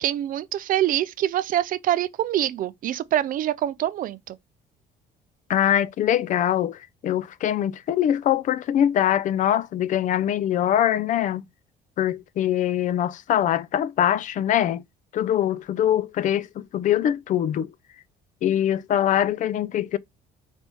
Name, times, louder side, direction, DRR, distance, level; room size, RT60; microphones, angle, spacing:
voice 1, 0.0-4.4, right 12 dB, 55° right, 0.4 m, -25 dB
voice 2, 5.5-11.4 12.0-14.8 15.1-17.7 18.4-20.0, left 10 dB, 50° left, 0.4 m, -23 dB
4.1 x 3.3 x 3.0 m
cardioid pair, 110°, 17 cm